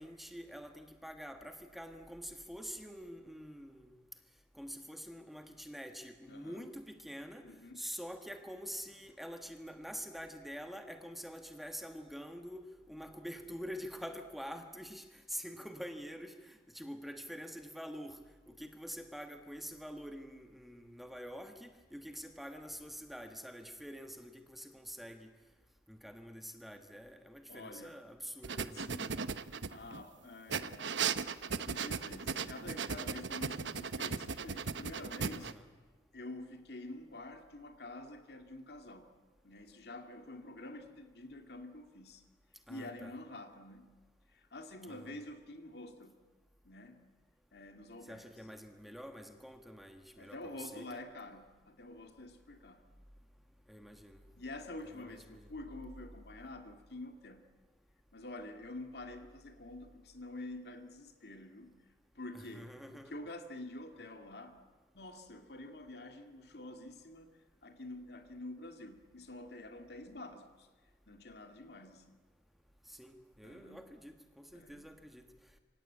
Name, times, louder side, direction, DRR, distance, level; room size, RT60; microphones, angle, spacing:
voice 1, 0.0-3.9 4.6-18.2 18.5-25.3 25.9-28.9 35.4-35.7 42.7-43.2 44.8-45.1 48.0-51.0 53.7-54.2 54.8-55.5 62.3-63.1 72.9-75.2, equal, ahead, 6 dB, 1.6 m, -46 dB
voice 2, 6.3-6.7 7.4-7.8 27.5-28.0 28.7-29.2 29.7-30.9 31.5-35.5 36.1-39.1 39.4-42.2 42.7-43.9 44.3-46.2 46.6-47.0 47.5-48.3 50.2-52.8 54.3-57.4 58.1-61.7 62.2-64.6 64.9-70.7 71.1-72.2 73.4-73.8 74.5-74.9, left 2 dB, 60° left, 6 dB, 2.4 m, -48 dB
sound 1, 28.4-30.0 30.5-35.5, right 6 dB, 90° right, 1.0 m, -37 dB
27.0 x 24.5 x 8.7 m, 1.3 s
head